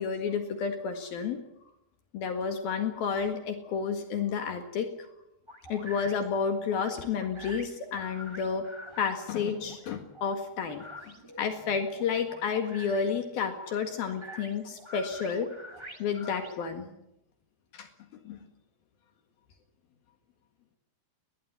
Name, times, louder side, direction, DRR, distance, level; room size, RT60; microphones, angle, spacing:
voice 1, 0.0-1.4 2.1-4.9 5.7-8.7 9.0-10.8 11.4-15.5 16.0-16.9 17.7-17.9 18.3-18.4, left 6 dB, 70° left, 6 dB, 3.5 m, -31 dB
sound 1, 5.5-16.9, equal, 10° right, 1.4 m, -47 dB
21.0 x 20.0 x 9.9 m, 0.84 s
omnidirectional pair, 4.6 m